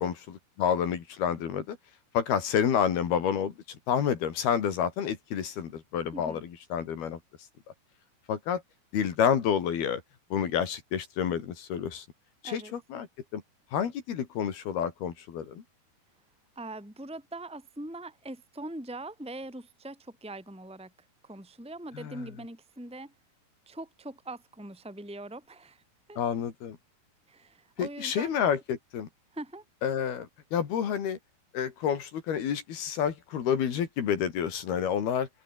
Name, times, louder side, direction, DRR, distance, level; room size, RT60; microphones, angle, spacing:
voice 1, 0.0-1.8 2.1-7.2 8.3-8.6 8.9-10.0 10.3-12.1 12.4-13.1 13.3-13.4 13.7-15.6 22.0-22.2 26.2-26.8 27.8-29.1 29.8-31.2 31.5-35.3, left 8 dB, 70° left, 4.6 m, -29 dB
voice 2, 16.6-20.9 21.2-23.1 23.7-25.8 26.1-26.2 27.3-28.4 29.3-29.6, right 1 dB, ahead, 4.0 m, -42 dB
omnidirectional pair, 4.6 m